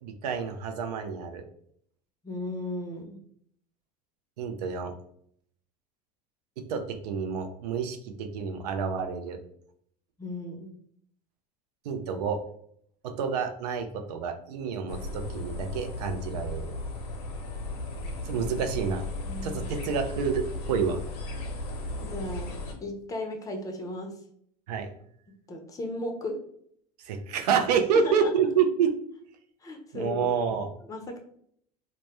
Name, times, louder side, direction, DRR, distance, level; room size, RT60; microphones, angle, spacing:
voice 1, 0.0-1.4 4.4-4.9 6.7-9.4 11.8-12.4 13.0-16.7 18.2-19.1 19.4-21.0 24.7-24.9 27.0-28.9 29.9-30.7, right 6 dB, 80° right, 6 dB, 0.4 m, -28 dB
voice 2, 2.2-3.2 10.2-10.7 18.3-18.5 19.2-19.6 22.0-22.5 22.8-24.1 25.5-26.4 28.0-28.3 29.6-30.3 30.9-31.2, left 1 dB, 15° left, 3 dB, 0.5 m, -35 dB
sound 1, 14.9-22.7, left 2 dB, 80° left, 0.6 m, -36 dB
2.1 x 2.1 x 2.8 m, 0.66 s
hypercardioid pair, 95°, 20 cm